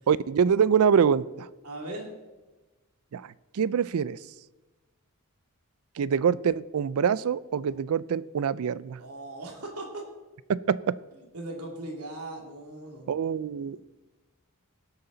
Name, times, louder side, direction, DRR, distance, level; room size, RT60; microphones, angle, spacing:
voice 1, 0.1-1.5 3.1-3.3 3.5-4.2 6.0-9.0 10.5-11.0 13.1-13.8, right 7 dB, 70° right, 20 dB, 0.4 m, -25 dB
voice 2, 1.6-2.1 9.0-10.1 11.1-13.1 13.4-13.7, right 2 dB, 85° right, 1 dB, 2.7 m, -39 dB
18.5 x 8.2 x 3.9 m, 1.2 s
head